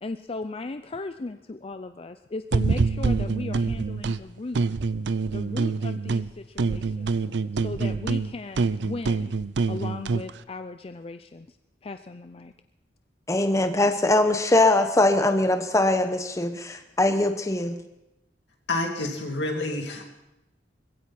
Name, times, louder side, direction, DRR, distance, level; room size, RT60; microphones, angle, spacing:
voice 1, 0.0-4.6 5.3-7.1 7.5-9.3 9.7-11.6 11.8-12.5, left 3 dB, 35° left, 9 dB, 0.5 m, -36 dB
sound 1, 2.5-4.2 4.5-6.3 6.6-10.3, right 4 dB, 75° right, 0.5 m, -26 dB
voice 2, 13.3-17.8, left 2 dB, 20° left, 7 dB, 0.9 m, -22 dB
voice 3, 18.7-20.1, left 2 dB, 80° left, 2 dB, 2.6 m, -28 dB
20.5 x 16.0 x 4.2 m, 0.93 s
head